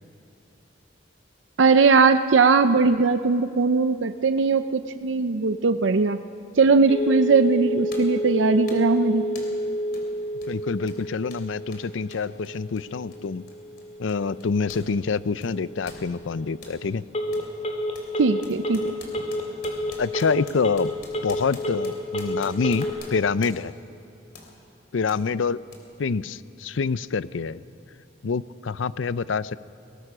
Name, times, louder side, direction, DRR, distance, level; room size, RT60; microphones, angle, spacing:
voice 1, 1.6-6.2 6.6-9.3 18.2-18.9, right 4 dB, 80° right, 10 dB, 0.6 m, -19 dB
Telephone, 6.9-22.9, equal, 35° left, 2.5 m, -30 dB
sound 1, 7.0-7.2 7.9-8.2 8.7-9.0 9.4-9.6 9.9-10.1 10.4-14.9 15.2-16.8 17.3-17.5 17.9-23.8 24.3-24.5 25.1-25.2 25.7-25.8, left 3 dB, 55° left, 3.3 m, -46 dB
voice 2, 10.5-13.4 14.0-17.0 20.0-20.9 21.2-23.7 24.9-25.6 26.0-27.6 28.2-29.6, left 5 dB, 85° left, 17 dB, 0.5 m, -26 dB
21.5 x 19.5 x 6.2 m, 2.7 s
head